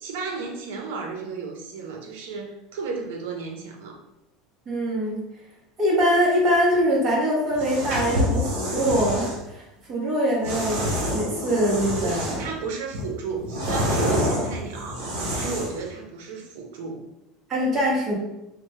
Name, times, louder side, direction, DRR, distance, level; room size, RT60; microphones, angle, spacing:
voice 1, 0.0-4.0 12.0-17.0, right 4 dB, 90° right, 2 dB, 0.6 m, -33 dB
voice 2, 4.7-5.2 5.8-9.6 9.9-12.4 17.5-18.1, equal, 25° right, -4 dB, 0.9 m, -23 dB
sound 1, 7.5-9.4 10.4-12.5 12.9-15.8, equal, 60° right, 0.9 m, -27 dB
3.2 x 2.1 x 3.1 m, 0.89 s
cardioid pair, 180°, 0 cm